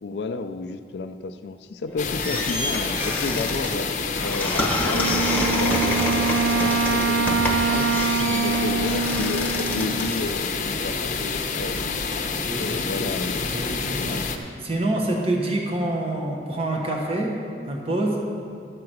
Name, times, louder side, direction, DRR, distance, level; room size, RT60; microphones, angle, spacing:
voice 1, 0.0-3.9 4.2-7.9 8.4-12.0 12.6-14.3, left 3 dB, 70° left, 9 dB, 0.4 m, -32 dB
sound 1, 1.9-11.0, left 1 dB, 10° left, 1.1 m, -28 dB
sound 2, 2.0-14.4, left 4 dB, 45° left, 0.7 m, -28 dB
Wind instrument woodwind instrument, 4.9-10.4, right 4 dB, 80° right, 0.3 m, -25 dB
voice 2, 12.4-13.1 13.4-14.2 14.6-17.4 17.7-18.2, right 1 dB, 35° right, 0 dB, 1.0 m, -27 dB
12.5 x 4.8 x 7.8 m, 2.4 s
head